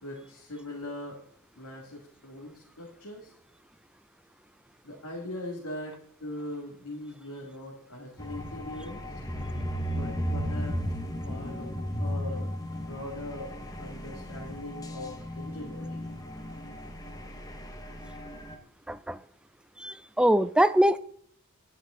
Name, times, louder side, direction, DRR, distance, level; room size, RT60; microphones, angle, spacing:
voice 1, 0.0-1.2 1.6-3.3 4.8-9.0 9.9-10.8 11.3-11.7 12.0-16.1, left 1 dB, 80° left, 2.0 m, -41 dB
sound 1, 8.2-18.6, equal, 15° left, 1.1 m, -35 dB
voice 2, 18.9-19.2 19.8-21.0, right 1 dB, 5° right, 0.4 m, -23 dB
11.0 x 10.0 x 3.7 m
head